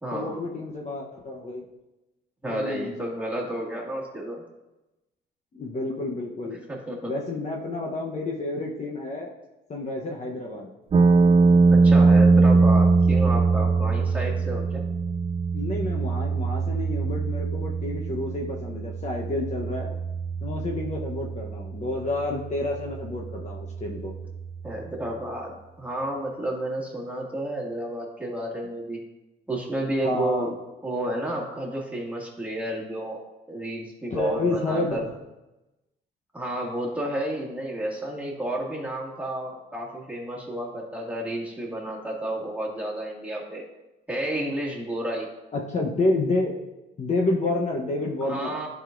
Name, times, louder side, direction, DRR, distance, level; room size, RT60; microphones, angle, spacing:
voice 1, 0.1-1.6 2.5-2.9 5.5-6.6 7.1-9.3 9.7-10.7 15.5-19.9 20.4-24.1 30.0-30.5 34.1-35.0 45.5-46.5 47.0-48.6, left 2 dB, 35° left, -1 dB, 0.9 m, -29 dB
voice 2, 2.4-4.4 6.7-7.1 11.7-14.9 24.6-29.0 29.5-30.6 30.8-33.2 33.5-35.1 36.3-43.6 44.1-45.3 48.2-48.7, right 1 dB, 5° right, -4 dB, 2.1 m, -31 dB
sound 1, 10.9-25.0, right 4 dB, 30° right, 0.4 m, -22 dB
11.0 x 5.0 x 2.6 m, 1.0 s
cardioid pair, 90°, 20 cm